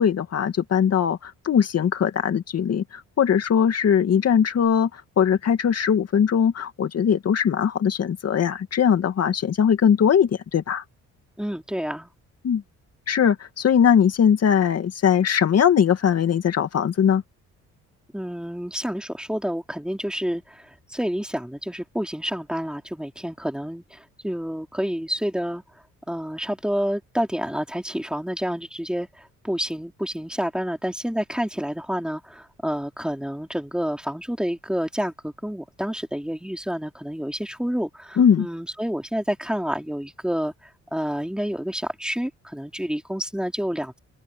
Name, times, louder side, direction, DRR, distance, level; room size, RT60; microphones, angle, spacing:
voice 1, 0.0-10.8 12.4-12.6 13.1-17.2 38.2-38.5, left 8 dB, 55° left, 2.3 m, -20 dB
voice 2, 11.4-12.1 18.1-25.6 26.1-40.5 40.9-44.0, equal, 5° right, 3.4 m, -29 dB
open air
cardioid pair, 90°, 30 cm